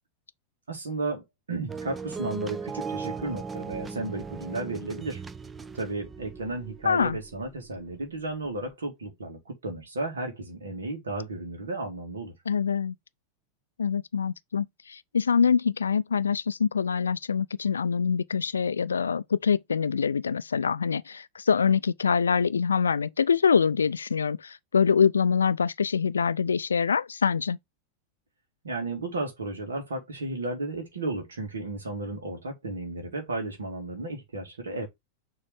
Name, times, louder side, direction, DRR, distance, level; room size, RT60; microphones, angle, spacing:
voice 1, 0.7-5.2 5.7-12.3 28.6-34.9, right 2 dB, 70° right, 1.8 m, -33 dB
sound 1, 1.7-7.8 8.4-8.5, right 5 dB, 15° right, 0.4 m, -38 dB
voice 2, 6.8-7.2 12.5-12.9 13.8-27.6, left 6 dB, 70° left, 0.4 m, -25 dB
6.7 x 3.2 x 4.7 m
figure-of-eight pair, 90°, 0 cm